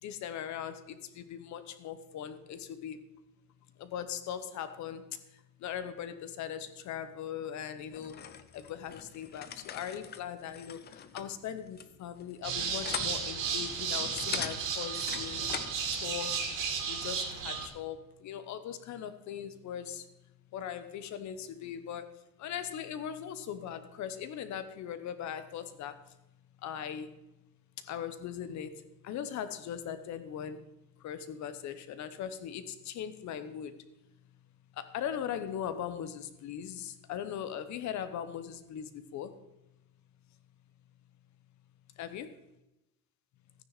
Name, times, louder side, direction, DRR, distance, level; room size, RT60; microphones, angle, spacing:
voice 1, 0.0-3.0 3.8-8.2 8.5-20.1 20.5-26.1 26.6-27.1 27.8-30.7 31.0-33.8 34.7-39.4 42.0-42.3, left 9 dB, 50° left, 1.0 m, -40 dB
sound 1, 7.9-15.8, left 8 dB, 30° left, 0.6 m, -43 dB
sound 2, 12.4-17.7, right 6 dB, 60° right, 2.6 m, -34 dB
14.0 x 9.5 x 4.1 m
cardioid pair, 175°, 36 cm